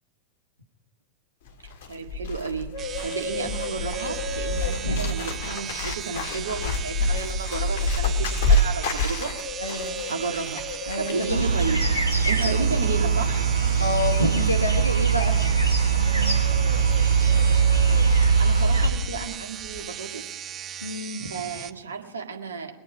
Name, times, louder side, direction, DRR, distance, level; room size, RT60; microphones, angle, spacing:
Bird, 1.5-19.3 19.5-19.9, left 2 dB, 50° left, 1.9 m, -29 dB
voice 1, 1.9-9.3 10.1-11.8 12.3-13.5 18.1-20.4 21.2-22.7, right 5 dB, 70° right, 3 dB, 1.8 m, -32 dB
sound 1, 2.8-21.7, right 9 dB, 25° right, 0.7 m, -37 dB
voice 2, 4.8-5.2 9.6-10.0 10.9-11.5 12.4-12.7 13.8-15.6 20.8-21.3, left 1 dB, 85° left, 4 dB, 1.3 m, -28 dB
sound 2, 11.3-18.9, right 6 dB, 90° right, 2.1 m, -21 dB
23.0 x 8.8 x 5.0 m, 0.99 s
figure-of-eight pair, 90°, 0 cm